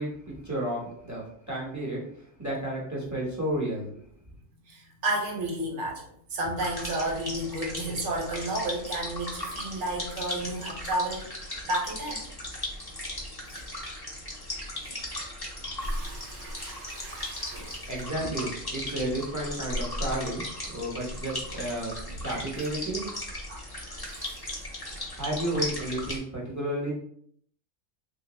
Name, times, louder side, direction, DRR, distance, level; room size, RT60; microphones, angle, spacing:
voice 1, 0.0-4.0 17.5-21.9 22.2-23.1 25.1-26.9, right 1 dB, 15° right, -5 dB, 0.8 m, -32 dB
voice 2, 4.7-11.3 11.6-12.3 14.8-14.9 15.8-17.9 18.2-18.3 22.1-22.2 23.5-23.6 23.8-24.7, right 1 dB, 60° right, 0 dB, 1.1 m, -33 dB
sound 1, 6.6-26.2, left 1 dB, 20° left, 0.8 m, -37 dB
3.3 x 2.8 x 3.0 m, 0.65 s
omnidirectional pair, 1.4 m